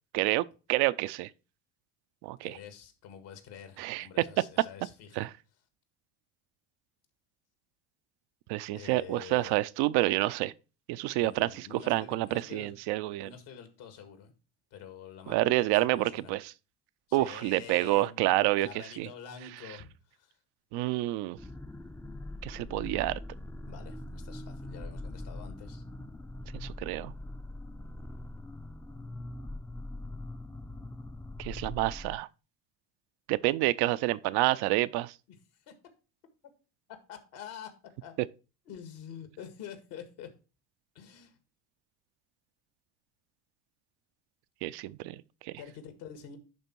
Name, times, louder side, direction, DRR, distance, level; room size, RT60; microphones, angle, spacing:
voice 1, 0.1-1.3 2.2-2.6 3.8-4.1 5.2-5.3 8.5-10.5 10.9-13.3 15.3-16.5 17.1-19.1 20.7-21.4 22.4-23.2 26.5-27.1 31.4-32.3 33.3-35.1 44.6-45.5, right 17 dB, 65° right, 0.6 m, -28 dB
voice 2, 2.4-5.3 8.7-9.6 11.1-12.7 13.2-14.3 14.7-16.3 17.1-19.9 20.2-20.3 23.6-25.8 35.3-35.4 35.7-35.8 37.1-37.7 38.0-38.1 38.7-40.3 40.9-41.4 45.6-46.4, left 8 dB, 70° left, 1.9 m, -47 dB
sound 1, 21.4-32.2, left 1 dB, 5° left, 0.5 m, -42 dB
11.0 x 3.6 x 4.5 m
hypercardioid pair, 70°, 43 cm